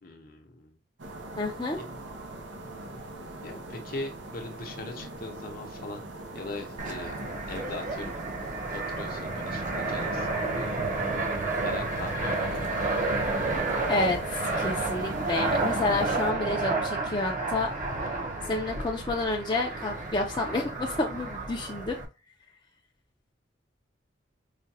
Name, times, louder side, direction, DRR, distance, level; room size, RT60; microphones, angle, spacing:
voice 1, 0.0-0.8 1.7-1.9 3.4-6.0 6.3-7.2 7.5-8.2 8.7-10.7 11.6-12.7, left 2 dB, 55° left, 3 dB, 0.8 m, -40 dB
sound 1, 1.0-16.3, right 2 dB, 85° right, 0.7 m, -42 dB
voice 2, 1.4-1.8 13.9-17.7 18.5-22.0, left 2 dB, 25° left, -1 dB, 0.5 m, -29 dB
Fixed-wing aircraft airplane, 6.8-22.1, right 2 dB, 45° right, 0.7 m, -31 dB
4.9 x 2.2 x 2.7 m, 0.29 s
head